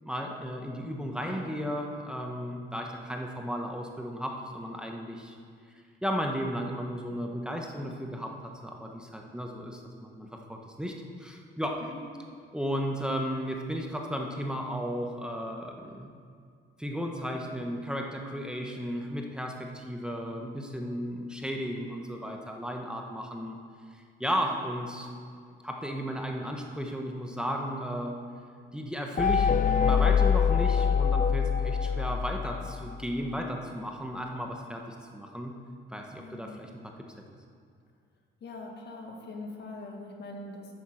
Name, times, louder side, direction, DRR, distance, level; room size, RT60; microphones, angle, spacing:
voice 1, 0.0-5.4 6.0-8.3 8.6-11.9 12.5-16.1 16.8-23.6 23.9-25.1 25.6-28.2 28.7-35.5 35.9-36.9, equal, 5° right, 1 dB, 1.0 m, -34 dB
sound 1, 29.2-32.9, left 7 dB, 40° left, 0.5 m, -24 dB
voice 2, 36.2-36.7 38.4-40.7, left 2 dB, 60° left, 1 dB, 1.7 m, -42 dB
8.9 x 7.4 x 6.3 m, 2.2 s
cardioid pair, 90°, 20 cm